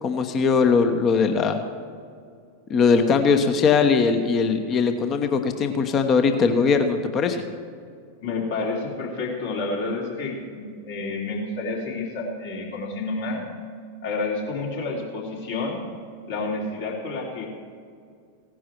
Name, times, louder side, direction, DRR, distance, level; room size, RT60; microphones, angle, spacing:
voice 1, 0.0-1.6 2.7-7.4, left 5 dB, 30° left, 7 dB, 1.0 m, -20 dB
voice 2, 8.2-13.4 14.0-15.8 16.3-17.5, left 3 dB, 60° left, -3 dB, 3.5 m, -29 dB
16.5 x 10.5 x 4.6 m, 2.2 s
figure-of-eight pair, 90°, 0 cm